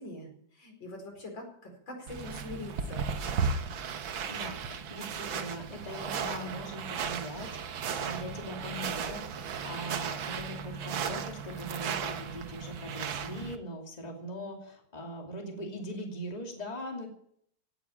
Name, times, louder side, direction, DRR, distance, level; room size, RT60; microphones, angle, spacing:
voice 1, 0.0-3.1, left 2 dB, 80° left, 2 dB, 5.5 m, -43 dB
sound 1, 2.1-13.6, right 6 dB, 85° right, 1.9 m, -35 dB
voice 2, 4.2-17.1, equal, 20° left, 0 dB, 2.7 m, -41 dB
17.5 x 9.0 x 8.7 m, 0.68 s
omnidirectional pair, 2.1 m